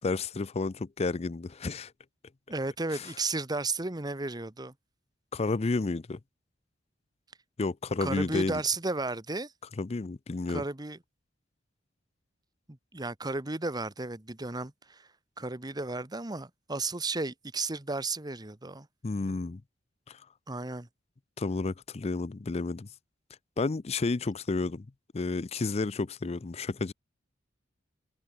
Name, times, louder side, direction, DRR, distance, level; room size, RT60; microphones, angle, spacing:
voice 1, 0.0-1.9 2.9-3.1 5.3-6.2 7.6-8.6 9.8-10.6 19.0-19.6 20.1-20.2 21.4-22.9 23.6-24.9 25.1-26.9, left 3 dB, 35° left, 0.5 m, -31 dB
voice 2, 2.5-4.7 8.0-9.5 10.5-11.0 12.7-15.1 15.4-18.9 20.5-20.9, right 3 dB, 20° right, 1.4 m, -33 dB
head